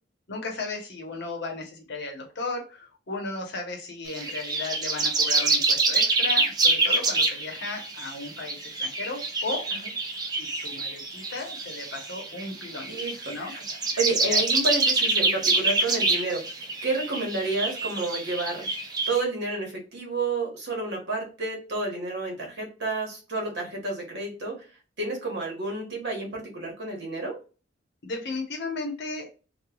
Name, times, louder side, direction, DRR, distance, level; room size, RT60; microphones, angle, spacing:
voice 1, 0.3-9.7 10.3-12.9 13.3-13.5 14.2-14.4 28.0-29.3, left 3 dB, 65° left, 2 dB, 0.8 m, -35 dB
sound 1, 4.1-19.2, right 3 dB, 20° right, 0.4 m, -26 dB
voice 2, 14.0-16.4 16.8-18.7 19.1-24.6 25.0-27.4, right 2 dB, 60° right, 0 dB, 1.1 m, -30 dB
3.0 x 2.2 x 2.3 m, 0.34 s
head